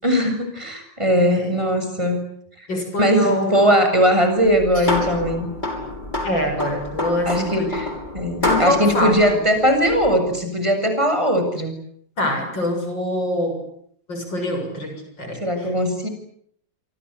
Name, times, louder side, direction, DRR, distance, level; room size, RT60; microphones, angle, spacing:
voice 1, 0.0-2.2 2.6-2.7 3.0-5.5 7.3-7.9 8.1-11.8 15.4-16.1, equal, 15° right, 6 dB, 7.4 m, -19 dB
voice 2, 1.2-1.6 2.7-3.6 6.2-7.8 8.4-9.2 12.2-13.6 14.1-15.7, left 1 dB, 75° left, 6 dB, 7.9 m, -24 dB
sound 1, 4.4-10.3, left 1 dB, 25° left, 6.6 m, -28 dB
29.0 x 25.0 x 8.2 m, 0.66 s
omnidirectional pair, 2.1 m